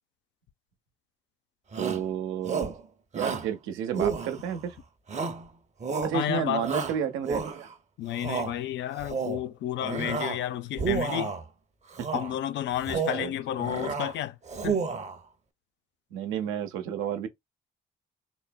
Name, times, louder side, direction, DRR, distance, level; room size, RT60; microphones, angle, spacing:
Shout, 1.7-2.1 2.4-2.8 3.1-3.5 3.9-4.6 5.1-5.5 5.8-6.2 6.6-7.7 8.1-8.5 9.0-9.4 9.8-10.4 10.7-11.4 11.9-12.3 12.7-13.3 13.6-14.1 14.5-15.2, right 5 dB, 35° right, 0.7 m, -31 dB
voice 1, 1.7-2.7 3.1-4.8 6.0-7.7 12.0-12.1 12.9-13.3 16.1-17.3, right 8 dB, 80° right, 0.7 m, -31 dB
voice 2, 6.1-6.7 8.0-11.3 12.1-14.4 14.6-14.8, left 12 dB, 65° left, 0.4 m, -31 dB
3.7 x 2.1 x 2.2 m
hypercardioid pair, 55°, 21 cm